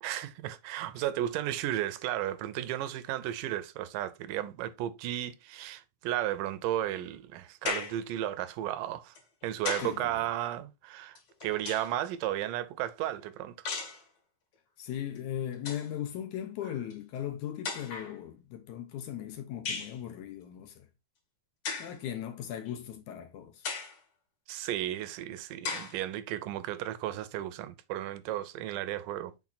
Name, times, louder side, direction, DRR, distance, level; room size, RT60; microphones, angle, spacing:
voice 1, 0.0-9.2 9.4-13.7 24.5-29.3, right 12 dB, 80° right, 2.2 m, -34 dB
sound 1, 7.7-8.1 9.2-10.0 11.2-12.1 13.7-14.0 15.2-15.3 15.5-15.9 16.9-17.0 17.6-18.2 19.7-20.0 21.6-22.0 22.7-22.8 23.6-24.0 24.7-24.8 25.6-26.0, left 4 dB, 55° left, 2.4 m, -36 dB
voice 2, 9.8-10.3 14.8-20.9 21.8-23.6, left 10 dB, 75° left, 1.9 m, -38 dB
5.9 x 4.5 x 4.0 m
omnidirectional pair, 4.0 m